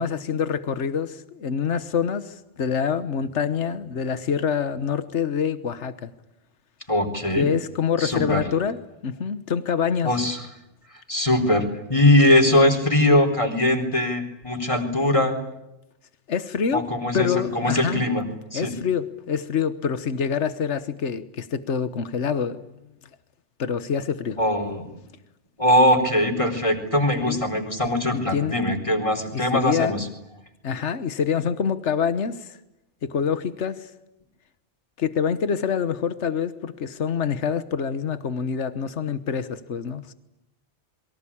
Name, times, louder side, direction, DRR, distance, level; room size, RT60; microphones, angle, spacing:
voice 1, 0.0-6.1 7.4-10.2 16.3-16.8 17.1-18.0 18.5-22.6 23.6-24.4 27.3-27.4 28.1-28.6 29.3-30.0 30.6-32.6 33.0-33.9 35.0-40.1, left 7 dB, 75° left, 11 dB, 1.5 m, -26 dB
voice 2, 6.9-7.5 8.0-8.4 10.0-10.4 11.1-11.6 11.9-15.3 16.7-18.2 18.5-18.7 24.4-24.9 25.6-30.1, left 1 dB, 25° left, 5 dB, 4.2 m, -21 dB
28.0 x 23.0 x 8.7 m, 0.89 s
omnidirectional pair, 1.2 m